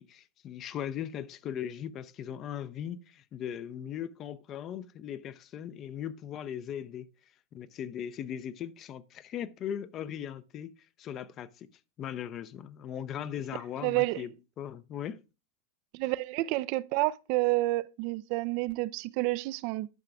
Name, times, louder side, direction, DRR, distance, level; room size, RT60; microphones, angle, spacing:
voice 1, 0.0-7.1 7.5-11.7 12.0-15.2, left 9 dB, 35° left, 0.5 m, -39 dB
voice 2, 13.8-14.2 15.9-19.9, right 20 dB, 50° right, 0.3 m, -29 dB
11.5 x 5.7 x 2.4 m
hypercardioid pair, 95°, 0 cm